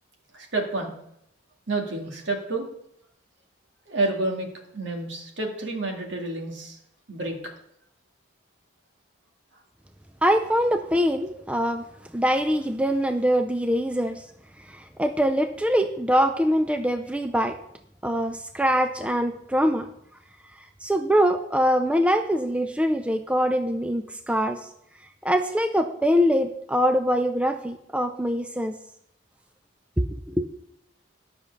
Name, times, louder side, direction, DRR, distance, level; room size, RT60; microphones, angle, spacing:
voice 1, 0.3-0.9 1.7-2.7 3.9-4.5 4.7-6.8 7.1-7.4, right 2 dB, 70° right, 1 dB, 2.2 m, -29 dB
voice 2, 10.2-11.8 12.1-14.3 14.7-17.6 18.0-19.9 20.8-24.7 25.2-28.7 30.0-30.5, equal, 5° right, 7 dB, 0.4 m, -23 dB
10.5 x 5.9 x 6.5 m, 0.75 s
head